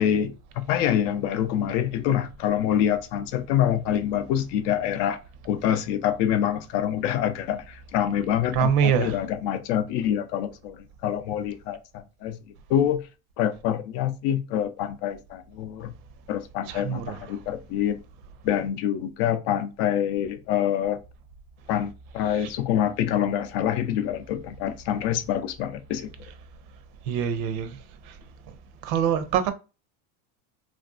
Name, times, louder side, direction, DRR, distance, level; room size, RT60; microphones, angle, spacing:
voice 1, 0.0-5.2 5.4-12.4 12.7-13.0 13.4-15.9 16.3-18.0 18.4-21.0 21.7-26.1, left 10 dB, 55° left, 0.5 m, -26 dB
voice 2, 8.5-9.2 16.7-17.4 22.3-22.5 27.1-27.8 28.8-29.5, right 8 dB, 70° right, 0.7 m, -25 dB
3.2 x 2.5 x 2.3 m
cardioid pair, 165°, 44 cm